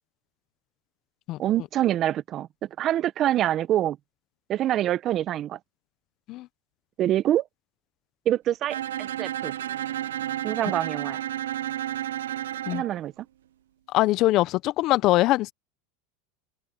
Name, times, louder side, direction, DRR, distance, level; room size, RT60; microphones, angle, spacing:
voice 1, 1.4-2.5 2.8-4.0 4.5-5.6 7.0-7.4 8.2-9.5 10.4-11.2 12.7-13.2, right 12 dB, 45° right, 1.6 m, -25 dB
Bowed string instrument, 8.7-12.9, right 12 dB, 85° right, 0.8 m, -31 dB
voice 2, 13.9-15.5, left 17 dB, 50° left, 1.2 m, -22 dB
open air
hypercardioid pair, 95°, 0 cm